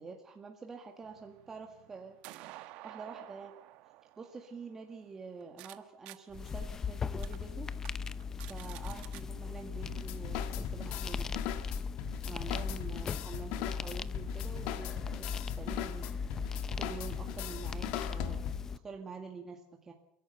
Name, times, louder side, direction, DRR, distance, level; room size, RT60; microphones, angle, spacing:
voice 1, 0.0-3.5 4.2-7.7 8.5-11.4 12.2-16.2 16.7-19.9, right 4 dB, 20° right, 2 dB, 1.9 m, -47 dB
sound 1, 1.0-5.8 6.1-6.2 6.7-6.8 7.2-7.4 7.8-7.9 8.2-9.2, right 16 dB, 60° right, 1.2 m, -51 dB
sound 2, 6.3-18.8, left 5 dB, 25° left, 0.7 m, -38 dB
sound 3, 9.8-18.8, left 11 dB, 65° left, 1.6 m, -40 dB
29.0 x 11.5 x 7.9 m, 0.77 s
supercardioid pair, 130°, 2 cm